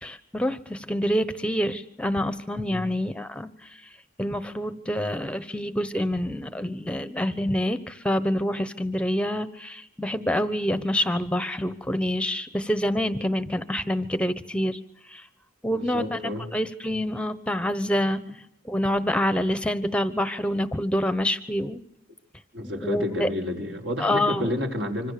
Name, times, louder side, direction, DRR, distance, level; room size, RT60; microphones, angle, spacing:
voice 1, 0.0-3.5 4.2-14.8 15.1-15.2 15.6-16.2 16.5-18.2 18.7-21.8 22.8-23.3 24.0-24.5, equal, 5° left, 11 dB, 1.1 m, -26 dB
voice 2, 15.7-16.5 22.5-25.1, left 1 dB, 60° right, 2 dB, 5.4 m, -30 dB
26.0 x 26.0 x 6.9 m, 0.77 s
head